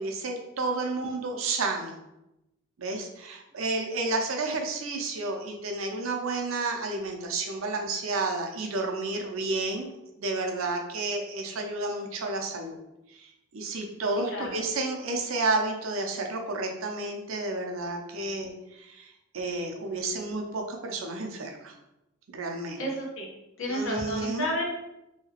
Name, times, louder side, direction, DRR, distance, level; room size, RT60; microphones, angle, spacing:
voice 1, 0.0-1.9 2.8-9.9 10.2-12.8 13.5-18.5 18.8-19.1 19.3-21.7 22.3-22.8 23.7-24.5, right 3 dB, 75° right, 3 dB, 0.5 m, -31 dB
voice 2, 14.3-14.6 22.8-23.3 23.6-24.6, left 1 dB, 65° left, -2 dB, 0.9 m, -31 dB
2.8 x 2.8 x 2.8 m, 0.92 s
head